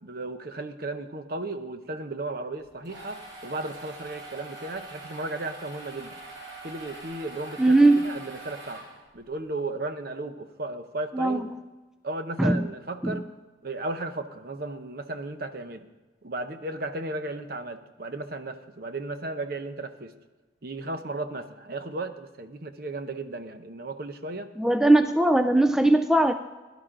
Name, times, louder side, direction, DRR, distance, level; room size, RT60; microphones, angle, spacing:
voice 1, 0.0-6.2 6.6-8.8 9.1-11.5 12.0-13.3 13.6-15.8 16.2-20.1 20.6-24.5, right 2 dB, 50° right, 8 dB, 0.8 m, -35 dB
sound 1, 2.6-9.3, right 2 dB, 70° right, 3.5 m, -43 dB
voice 2, 7.6-8.1 11.1-11.5 12.4-12.7 13.0-13.2 24.6-26.3, right 2 dB, 5° right, 8 dB, 0.3 m, -20 dB
17.0 x 11.5 x 3.8 m, 1.2 s
head